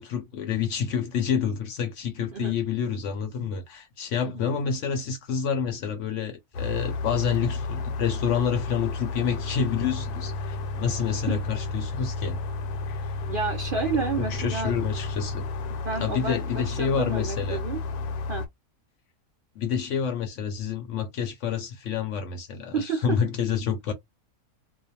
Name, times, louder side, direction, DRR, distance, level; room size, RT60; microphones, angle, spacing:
voice 1, 0.0-12.4 12.9-13.1 14.2-15.4 16.0-17.6 19.6-23.9, left 7 dB, 65° left, 0.8 m, -28 dB
sound 1, 6.5-18.5, left 3 dB, 90° left, 1.1 m, -32 dB
voice 2, 13.3-14.7 15.7-17.8 18.3-18.5 22.7-23.2, right 5 dB, 65° right, 0.5 m, -30 dB
2.4 x 2.2 x 2.6 m
omnidirectional pair, 1.6 m